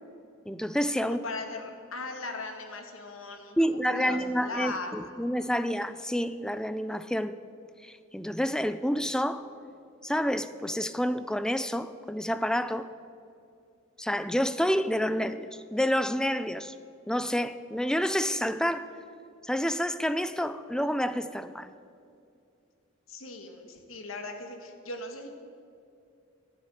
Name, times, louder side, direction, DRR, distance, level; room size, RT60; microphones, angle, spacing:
voice 1, 0.5-1.2 3.6-7.4 7.8-9.5 10.0-12.9 14.0-16.7 17.1-18.9 19.4-21.7, equal, 5° left, 0.5 m, -29 dB
voice 2, 1.0-4.9 23.1-25.3, left 3 dB, 80° left, 1.9 m, -39 dB
12.0 x 10.5 x 9.9 m
head